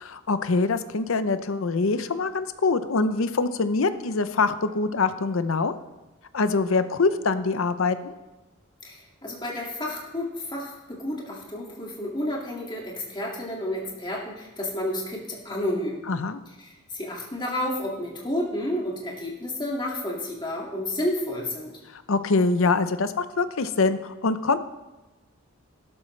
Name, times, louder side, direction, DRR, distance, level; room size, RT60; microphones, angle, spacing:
voice 1, 0.0-5.7 6.3-8.1 16.1-16.4 21.9-24.6, left 3 dB, 65° left, 12 dB, 0.6 m, -24 dB
voice 2, 8.8-16.1 16.6-21.7, left 1 dB, 20° left, -2 dB, 2.1 m, -31 dB
13.0 x 12.5 x 3.2 m, 1.1 s
head